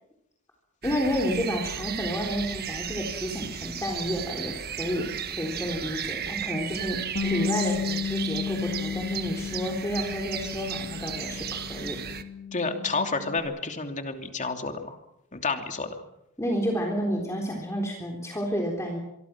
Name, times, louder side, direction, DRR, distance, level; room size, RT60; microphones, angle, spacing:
voice 1, 0.8-5.1 5.4-12.0 16.4-19.0, equal, 15° left, 0 dB, 3.8 m, -30 dB
sound 1, 0.8-12.2, right 8 dB, 50° right, 1.5 m, -35 dB
Bass guitar, 7.2-13.4, left 6 dB, 60° left, 3.1 m, -33 dB
voice 2, 12.5-15.0 15.3-16.0, left 3 dB, 35° left, 5 dB, 2.9 m, -30 dB
26.5 x 23.0 x 6.1 m, 0.82 s
head